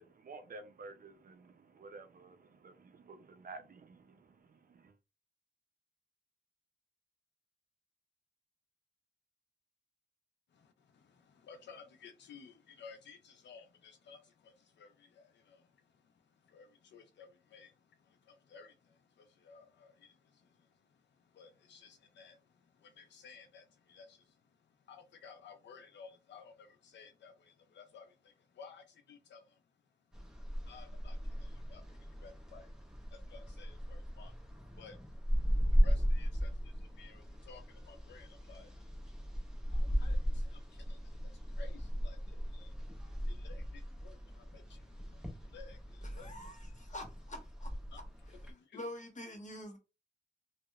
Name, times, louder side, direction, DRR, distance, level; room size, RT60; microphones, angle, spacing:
voice 1, 0.0-4.9, right 3 dB, 50° right, 0.5 m, -52 dB
voice 2, 10.5-46.3 47.9-48.0 48.3-48.9, left 5 dB, 80° left, 0.4 m, -57 dB
sound 1, 30.1-48.5, equal, 5° right, 0.8 m, -36 dB
voice 3, 46.1-47.7 48.7-49.8, left 1 dB, 45° left, 1.0 m, -46 dB
2.8 x 2.1 x 2.3 m
cardioid pair, 40°, 18 cm